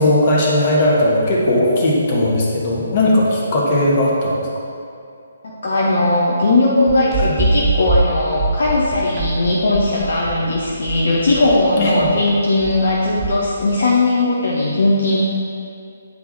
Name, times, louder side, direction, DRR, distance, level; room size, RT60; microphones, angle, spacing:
voice 1, 0.0-4.3 11.8-12.1, left 1 dB, 35° left, -4 dB, 1.3 m, -17 dB
voice 2, 5.4-15.2, left 2 dB, 55° left, -5 dB, 0.8 m, -18 dB
sound 1, 6.9-13.7, right 3 dB, 25° right, 0.8 m, -23 dB
9.5 x 4.7 x 2.7 m, 2.4 s
figure-of-eight pair, 135°, 0 cm